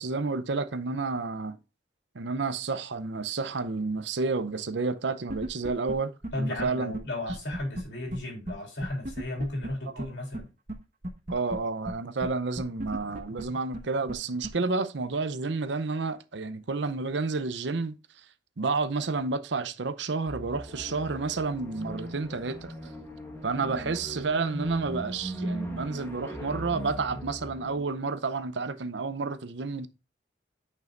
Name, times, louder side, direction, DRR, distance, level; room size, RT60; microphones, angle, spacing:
voice 1, 0.0-1.6 2.1-6.9 9.9-10.1 11.3-18.3 18.6-22.9 23.4-29.9, right 4 dB, 70° right, 0.7 m, -30 dB
sound 1, 5.3-5.9 6.2-6.3 6.6-6.7 6.9-7.0 7.3-7.8 8.1-8.2 8.5-8.6 8.8-9.7 10.0-10.1 10.3-10.4 10.7-10.8 11.0-11.6 11.9-12.0 12.2-12.3 12.6-13.4 13.7-13.8 14.1-14.2 14.4-14.5, right 1 dB, 40° right, 1.1 m, -34 dB
voice 2, 6.3-10.5, left 1 dB, 65° left, 3.5 m, -34 dB
sound 2, 20.2-27.9, equal, 10° left, 1.3 m, -38 dB
9.2 x 5.5 x 2.5 m
head